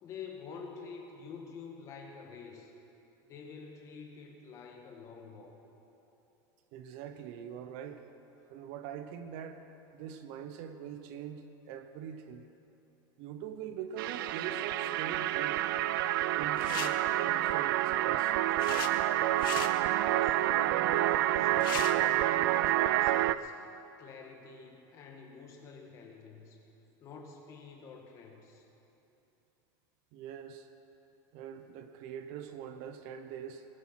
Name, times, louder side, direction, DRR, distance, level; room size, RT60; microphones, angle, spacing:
voice 1, 0.0-2.7 3.3-5.6 19.9-23.6 24.0-26.6 27.0-28.7, left 5 dB, 25° left, 1 dB, 1.6 m, -48 dB
voice 2, 6.7-8.0 8.5-9.6 9.9-12.5 13.2-15.7 16.4-18.3 30.1-30.7 31.3-33.7, right 8 dB, 45° right, 9 dB, 0.7 m, -43 dB
sound 1, 14.0-23.4, right 14 dB, 85° right, 0.4 m, -28 dB
sound 2, 16.5-16.9 18.1-18.9 19.3-19.7 21.2-21.3 21.5-21.9, left 12 dB, 85° left, 1.0 m, -38 dB
19.5 x 10.5 x 5.8 m, 3.0 s
supercardioid pair, 180°, 11 cm